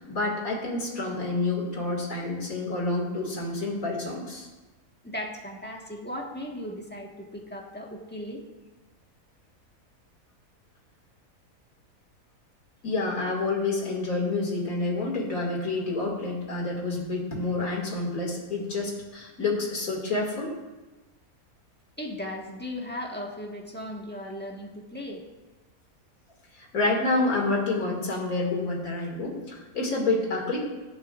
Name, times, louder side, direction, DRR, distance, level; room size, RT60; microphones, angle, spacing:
voice 1, 0.0-4.5 12.8-20.5 26.5-30.7, left 3 dB, 65° left, 0 dB, 2.7 m, -28 dB
voice 2, 5.0-8.4 22.0-25.2, left 1 dB, 5° left, 0 dB, 1.3 m, -37 dB
21.5 x 8.5 x 2.5 m, 1.1 s
omnidirectional pair, 1.6 m